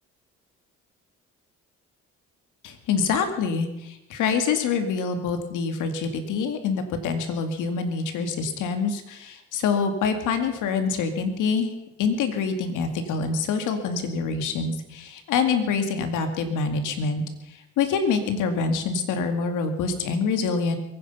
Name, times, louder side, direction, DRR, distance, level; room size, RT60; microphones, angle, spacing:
voice 1, 2.6-17.2 17.8-20.8, left 5 dB, 90° left, 7 dB, 2.2 m, -26 dB
23.0 x 10.0 x 5.5 m, 0.87 s
cardioid pair, 90°, 30 cm